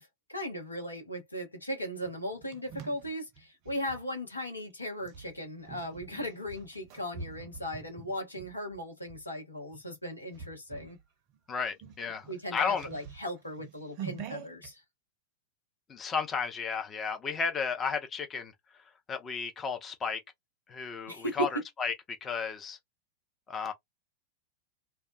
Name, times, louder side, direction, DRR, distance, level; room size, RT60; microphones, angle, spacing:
voice 1, 0.0-11.0 12.3-14.8 21.1-21.6, equal, 85° left, 0.9 m, -37 dB
sound 1, 2.1-4.0 5.0-9.2 9.7-10.0 10.3-11.0 11.3-11.4 11.7-14.7, right 7 dB, 45° right, 0.5 m, -45 dB
voice 2, 11.5-12.9 15.9-18.5 19.1-20.2 20.7-22.8 23.5-23.7, left 6 dB, 20° left, 0.5 m, -33 dB
2.2 x 2.1 x 2.6 m
figure-of-eight pair, 95°, 0 cm